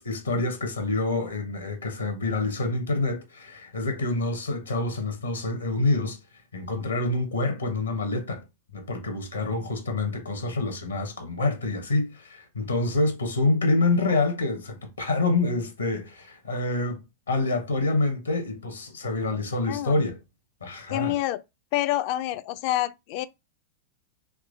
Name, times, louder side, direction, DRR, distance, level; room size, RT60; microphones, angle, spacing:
voice 1, 0.0-6.2 6.5-8.4 8.7-17.0 17.3-20.2 20.6-21.1, left 2 dB, 75° left, 1.0 m, -27 dB
voice 2, 20.9-21.4 21.7-23.3, left 15 dB, 45° left, 0.3 m, -27 dB
3.5 x 2.9 x 2.6 m
figure-of-eight pair, 90°, 0 cm